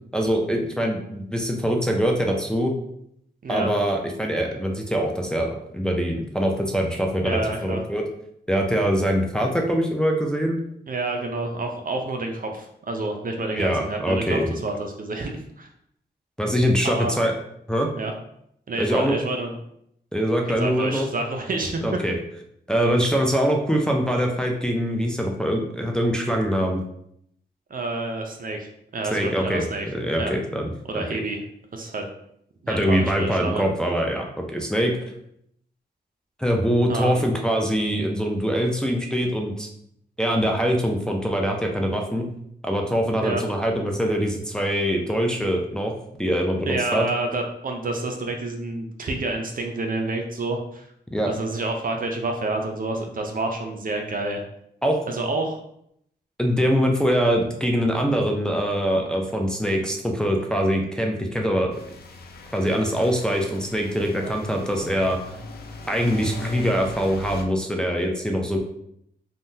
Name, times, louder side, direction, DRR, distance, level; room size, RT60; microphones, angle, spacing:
voice 1, 0.1-2.7 3.5-8.1 8.5-10.6 13.5-14.5 16.4-17.3 17.7-17.9 18.8-19.1 20.1-21.1 21.8-22.1 22.7-26.8 29.1-31.0 32.7-35.0 36.4-39.7 40.2-42.3 42.6-45.9 46.2-47.1 51.1-51.3 54.8-55.0 56.4-61.7 62.5-65.2 65.9-68.6, equal, 5° left, 1 dB, 0.4 m, -23 dB
voice 2, 7.2-7.8 10.9-15.7 16.8-17.2 17.9-18.1 18.7-19.5 20.5-21.8 27.7-29.9 30.2-30.3 30.8-31.4 31.7-32.1 32.6-33.6 36.9-37.2 43.2-43.4 46.6-50.9 51.2-54.4 55.1-55.6 64.2-64.3, right 2 dB, 50° right, 3 dB, 0.5 m, -28 dB
sound 1, 61.7-67.4, left 3 dB, 60° left, 0.4 m, -40 dB
3.6 x 2.2 x 2.6 m, 0.73 s
wide cardioid pair, 85°, 18 cm